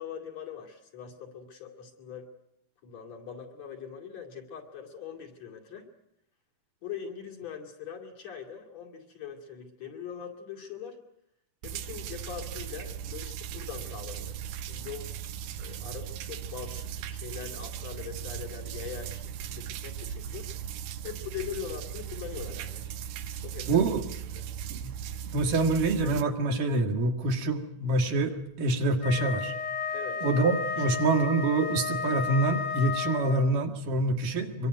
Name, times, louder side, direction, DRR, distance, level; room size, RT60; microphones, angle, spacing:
voice 1, 0.0-2.3 2.8-5.9 6.8-11.0 11.6-14.4 14.7-15.1 15.6-20.5 21.0-22.9 23.4-23.9 24.3-24.5 29.9-30.3 30.8-30.9, left 8 dB, 45° left, 2 dB, 3.7 m, -42 dB
sound 1, 11.6-26.2, right 9 dB, 85° right, 3.1 m, -38 dB
voice 2, 23.7-24.0 24.7-24.9 25.3-29.5 30.2-34.7, right 2 dB, 65° right, 3 dB, 3.4 m, -26 dB
Wind instrument woodwind instrument, 29.0-33.6, left 5 dB, 70° left, 4.0 m, -33 dB
25.0 x 23.5 x 8.0 m, 0.77 s
omnidirectional pair, 4.4 m